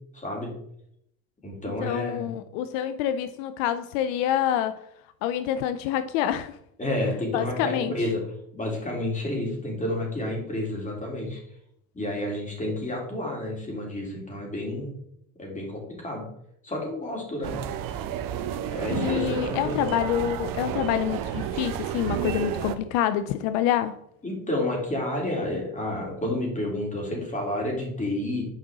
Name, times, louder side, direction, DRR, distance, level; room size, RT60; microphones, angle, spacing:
voice 1, 0.1-0.5 1.4-2.3 6.8-8.2 8.5-11.4 11.9-14.9 15.4-16.2 16.6-17.5 18.7-19.9 24.2-28.5, left 1 dB, 20° left, -1 dB, 3.5 m, -30 dB
voice 2, 1.8-4.8 5.2-6.6 7.3-7.9 18.9-24.0, left 10 dB, 75° left, 12 dB, 0.6 m, -27 dB
sound 1, 17.4-22.8, right 9 dB, 55° right, 0.9 m, -31 dB
9.2 x 5.4 x 3.7 m, 0.73 s
supercardioid pair, 85°, 40 cm